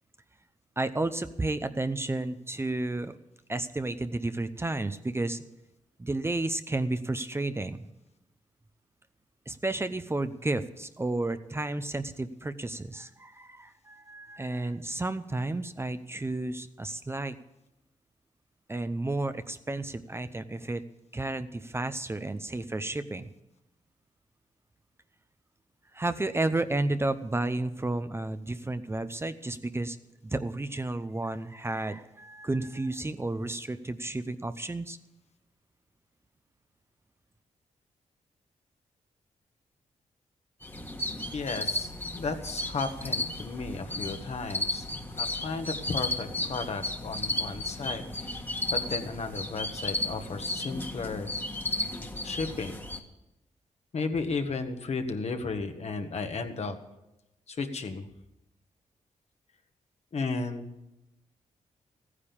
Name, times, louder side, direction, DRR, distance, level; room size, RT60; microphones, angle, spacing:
voice 1, 0.8-3.1 3.5-5.4 6.0-7.9 9.5-17.4 18.7-20.8 21.1-23.3 25.9-30.0 30.2-35.0, right 2 dB, 20° right, 11 dB, 0.7 m, -32 dB
sound 1, 40.6-53.0, left 1 dB, 15° left, 1.6 m, -34 dB
voice 2, 41.3-44.9 45.2-51.3 52.2-52.8 53.9-56.8 57.5-58.1 60.1-60.7, left 4 dB, 55° left, 6 dB, 1.6 m, -34 dB
15.0 x 9.9 x 7.2 m, 0.91 s
cardioid pair, 80°, 13 cm